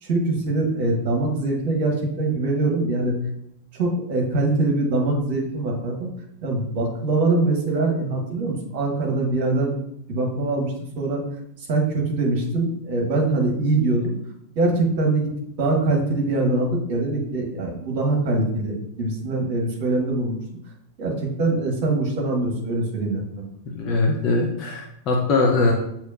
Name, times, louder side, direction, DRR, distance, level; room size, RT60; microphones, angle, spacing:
voice 1, 0.0-3.1 3.7-6.1 6.4-9.7 10.1-11.2 11.7-14.1 14.5-15.3 15.6-20.4 21.0-23.2, right 2 dB, 45° right, 1 dB, 1.1 m, -23 dB
voice 2, 23.7-25.7, left 3 dB, 35° left, -1 dB, 0.6 m, -21 dB
6.4 x 2.9 x 2.5 m, 0.75 s
figure-of-eight pair, 90°, 0 cm